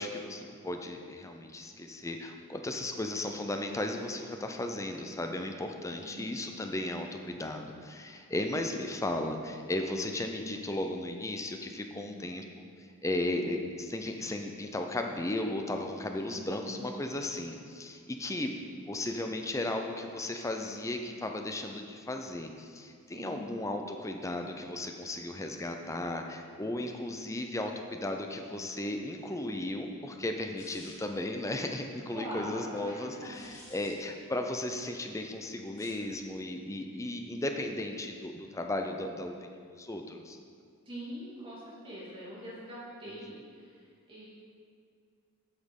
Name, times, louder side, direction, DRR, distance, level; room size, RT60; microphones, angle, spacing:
voice 1, 0.0-12.7 13.0-40.4, left 1 dB, 15° left, 4 dB, 0.5 m, -35 dB
voice 2, 5.9-6.4 11.9-12.3 16.2-17.0 23.1-23.7 32.1-33.5 40.8-44.3, equal, 25° right, -8 dB, 2.5 m, -44 dB
sound 1, 30.6-31.2 33.1-33.9 35.6-36.1, left 2 dB, 60° left, 2.3 m, -52 dB
8.0 x 6.4 x 5.3 m, 2.2 s
head